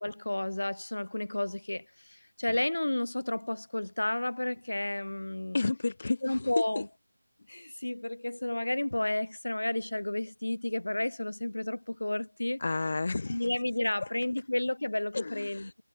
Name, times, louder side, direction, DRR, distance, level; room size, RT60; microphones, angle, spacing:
voice 1, 0.0-5.6 6.2-6.9 7.5-12.6 13.3-15.8, left 1 dB, 90° left, 1.6 m, -32 dB
voice 2, 5.5-6.8 12.6-13.5 15.1-15.8, left 3 dB, 40° left, 0.7 m, -31 dB
figure-of-eight pair, 175°, 0 cm